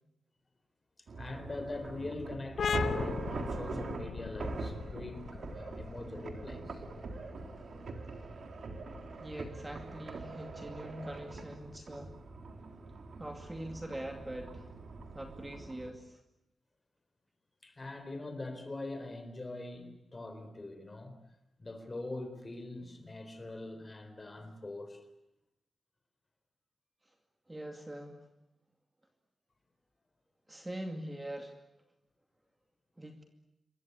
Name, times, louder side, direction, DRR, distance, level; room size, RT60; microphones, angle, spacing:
sound 1, 1.1-15.9, right 3 dB, 50° right, 3.8 m, -43 dB
voice 1, 1.2-6.8 17.6-21.1 21.6-25.0, left 2 dB, 20° left, 4.0 m, -43 dB
sound 2, 2.6-9.9, left 6 dB, 65° left, 1.3 m, -39 dB
voice 2, 9.2-12.1 13.2-14.7 15.1-16.2 27.5-28.2 30.5-31.6 33.0-33.2, right 1 dB, 10° right, 2.4 m, -43 dB
28.0 x 23.5 x 8.2 m
wide cardioid pair, 175°, 0 cm